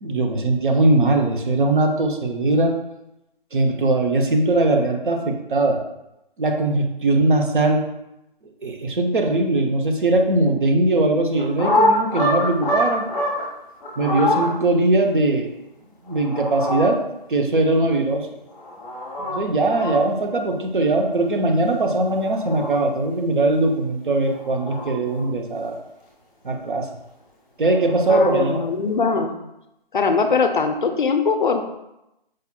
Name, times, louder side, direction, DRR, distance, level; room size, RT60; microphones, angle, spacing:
voice 1, 0.0-2.7 3.5-5.8 6.4-7.8 8.6-13.1 14.0-15.5 16.0-17.0 17.3-18.3 19.2-25.8 26.4-26.9 27.6-28.7, right 2 dB, 60° right, 3 dB, 0.7 m, -20 dB
sound 1, 11.4-13.4 13.8-14.5 16.1-16.8 18.5-19.4 19.7-19.9 22.0-22.7 24.3-25.2 27.6-28.5, left 1 dB, 10° left, 0.8 m, -24 dB
voice 2, 28.1-29.3 29.9-31.6, left 4 dB, 60° left, 6 dB, 0.4 m, -21 dB
4.7 x 2.8 x 2.2 m, 0.88 s
hypercardioid pair, 175°, 29 cm